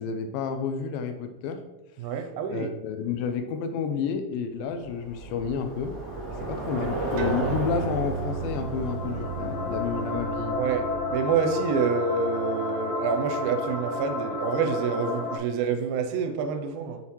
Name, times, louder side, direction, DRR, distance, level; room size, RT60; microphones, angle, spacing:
voice 1, 0.0-1.6 2.5-6.0 6.4-10.6, left 6 dB, 80° left, 7 dB, 2.2 m, -30 dB
voice 2, 2.0-2.7 6.8-6.9 10.6-17.0, right 6 dB, 90° right, 7 dB, 2.4 m, -27 dB
Bicycle, 4.8-11.3, right 2 dB, 20° right, 1.7 m, -34 dB
sound 1, 7.2-14.1, right 8 dB, 75° right, 1.9 m, -37 dB
sound 2, 8.2-15.4, left 3 dB, 60° left, 2.5 m, -32 dB
5.7 x 5.6 x 3.1 m, 1.0 s
omnidirectional pair, 4.2 m